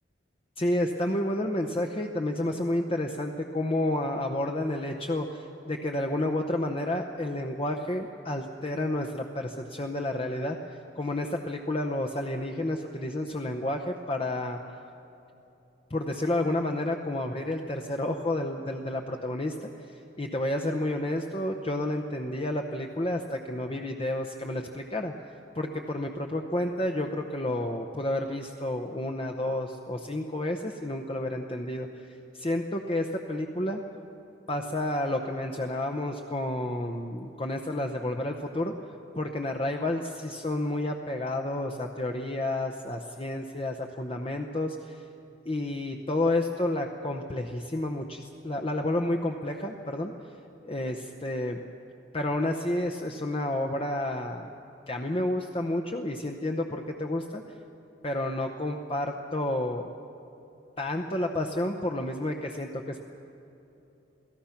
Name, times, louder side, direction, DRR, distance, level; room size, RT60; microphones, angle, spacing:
voice 1, 0.6-14.6 15.9-25.1 25.5-32.1 32.3-33.8 34.5-38.7 39.1-45.0 45.5-50.1 50.6-51.6 52.1-54.5 54.9-57.5 58.0-59.9 60.8-63.0, left 1 dB, 30° left, 3 dB, 0.8 m, -30 dB
28.0 x 17.5 x 5.8 m, 3.0 s
head